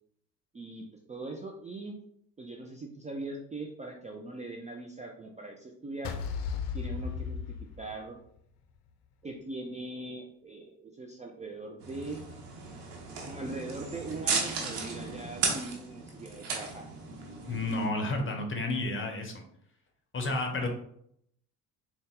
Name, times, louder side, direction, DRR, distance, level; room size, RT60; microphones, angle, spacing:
voice 1, 0.5-2.0 2.4-6.1 6.7-8.2 9.2-12.2 13.3-16.9, right 2 dB, 15° right, 1 dB, 0.5 m, -41 dB
sound 1, 6.0-8.4, left 6 dB, 60° left, 0.6 m, -35 dB
sound 2, 11.8-17.9, right 4 dB, 80° right, 0.9 m, -35 dB
voice 2, 17.5-19.4 20.1-20.7, left 2 dB, 25° left, 4 dB, 1.0 m, -31 dB
3.8 x 2.4 x 3.7 m, 0.71 s
hypercardioid pair, 60°, 44 cm